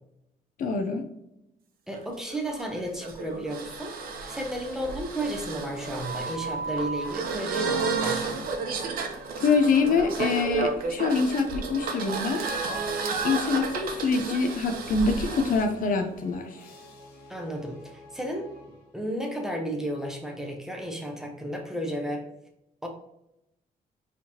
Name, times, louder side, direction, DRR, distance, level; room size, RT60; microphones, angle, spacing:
voice 1, 0.6-1.1 9.4-12.5 13.2-16.7, left 4 dB, 60° left, 6 dB, 0.7 m, -25 dB
voice 2, 1.9-3.9 4.3-8.5 17.3-18.5 18.9-22.3 22.8-22.9, right 1 dB, 5° right, 1 dB, 0.9 m, -33 dB
sound 1, 1.9-15.6, right 4 dB, 70° right, 0.8 m, -32 dB
sound 2, 2.8-10.7 11.3-19.2, left 1 dB, 90° left, 1.3 m, -51 dB
4.6 x 3.6 x 2.9 m, 0.84 s
cardioid pair, 130°, 15 cm